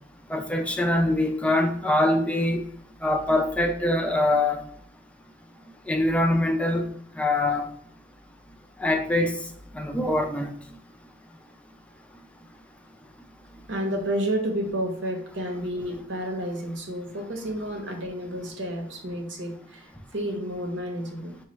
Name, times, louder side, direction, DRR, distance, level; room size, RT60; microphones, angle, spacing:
voice 1, 0.3-2.6 3.0-4.6 5.9-6.9 7.2-7.7 8.8-9.3 9.7-10.5, left 1 dB, 5° left, 4 dB, 0.4 m, -23 dB
voice 2, 13.7-21.4, right 1 dB, 80° right, 2 dB, 0.9 m, -31 dB
5.5 x 2.3 x 3.1 m, 0.65 s
head